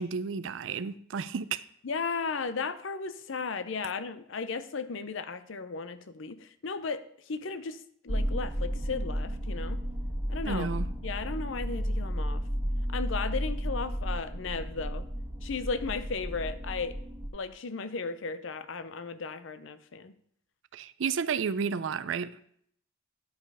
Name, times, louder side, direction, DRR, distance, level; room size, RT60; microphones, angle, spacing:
voice 1, 0.0-1.6 10.5-10.9 20.7-22.3, right 6 dB, 70° right, 0.4 m, -32 dB
voice 2, 1.8-7.0 7.3-7.8 8.0-9.8 10.3-10.7 11.0-12.4 12.9-15.0 15.4-17.0 17.3-20.1, left 4 dB, 70° left, 0.6 m, -35 dB
sound 1, 8.1-17.3, equal, 15° right, 1.6 m, -33 dB
10.5 x 5.4 x 4.8 m
head